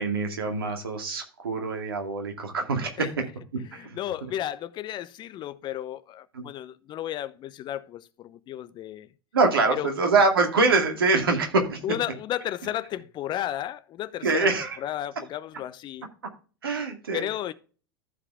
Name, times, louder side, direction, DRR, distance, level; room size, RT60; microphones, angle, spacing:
voice 1, 0.0-3.2 3.7-4.0 6.3-6.4 9.3-11.8 14.2-14.8 16.6-17.2, right 3 dB, 75° right, 2.3 m, -24 dB
voice 2, 3.7-9.1 9.7-9.9 11.8-14.5 14.8-16.1 17.1-17.5, left 12 dB, 40° left, 0.7 m, -33 dB
14.0 x 4.9 x 3.5 m
figure-of-eight pair, 80°, 12 cm